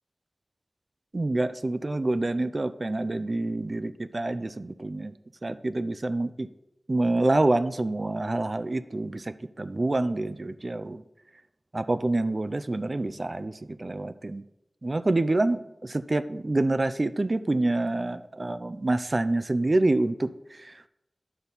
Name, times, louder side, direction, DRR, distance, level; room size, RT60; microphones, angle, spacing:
voice 1, 1.1-5.1 5.4-6.5 6.9-11.0 11.7-14.4 14.8-20.9, right 2 dB, 45° right, 12 dB, 0.5 m, -27 dB
10.0 x 4.1 x 7.0 m, 0.84 s
wide cardioid pair, 60°, 0 cm